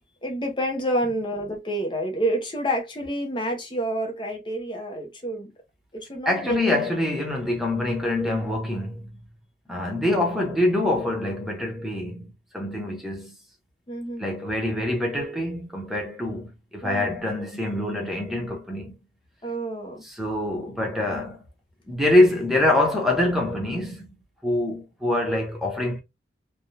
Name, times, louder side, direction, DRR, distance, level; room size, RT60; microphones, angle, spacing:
voice 1, 0.2-5.5 5.9-6.8 8.3-8.4 13.9-14.2 16.8-17.1 19.4-20.0, right 1 dB, 25° left, 0.8 m, -28 dB
voice 2, 6.2-9.2 9.7-13.4 14.2-19.0 20.0-21.4 21.9-24.1 24.4-26.0, left 1 dB, ahead, 1.0 m, -25 dB
3.4 x 2.3 x 2.7 m
head